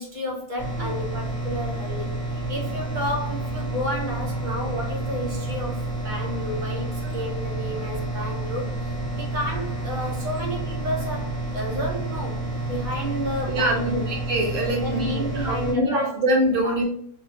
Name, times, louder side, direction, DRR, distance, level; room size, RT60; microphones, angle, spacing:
voice 1, 0.0-2.2 2.5-14.1 14.8-16.1 16.6-16.8, equal, 35° right, -1 dB, 1.0 m, -31 dB
sound 1, 0.6-15.7, right 2 dB, 15° left, 1.6 m, -30 dB
voice 2, 13.5-16.8, equal, 60° right, 0 dB, 1.3 m, -24 dB
4.6 x 2.9 x 2.7 m, 0.65 s
omnidirectional pair, 1.6 m